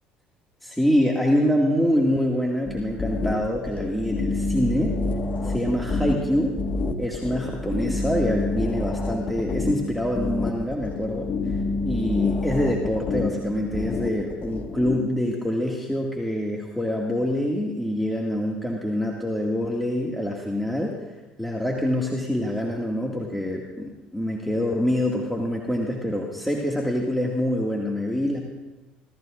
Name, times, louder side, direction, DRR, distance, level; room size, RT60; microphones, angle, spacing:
voice 1, 0.6-5.0 5.4-6.5 7.0-11.6 11.9-21.0 21.4-28.4, left 1 dB, ahead, -2 dB, 2.2 m, -25 dB
sound 1, 2.6-15.0, left 3 dB, 40° left, 1.7 m, -28 dB
29.5 x 14.5 x 2.6 m, 1.1 s
hypercardioid pair, 70°, 4 cm